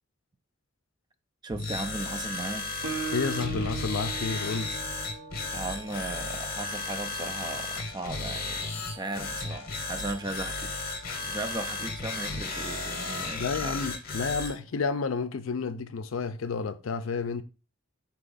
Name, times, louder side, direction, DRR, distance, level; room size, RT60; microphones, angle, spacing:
voice 1, 1.4-2.7 5.5-13.8, right 2 dB, 20° right, 0.4 m, -37 dB
sound 1, 1.5-14.6, left 3 dB, 45° left, 0.8 m, -34 dB
Guitar, 2.8-6.5, right 5 dB, 65° right, 0.8 m, -38 dB
voice 2, 3.1-4.7 13.3-17.4, left 5 dB, 75° left, 0.5 m, -30 dB
Brass instrument, 3.9-13.0, equal, 40° right, 1.0 m, -51 dB
4.4 x 2.9 x 3.9 m
head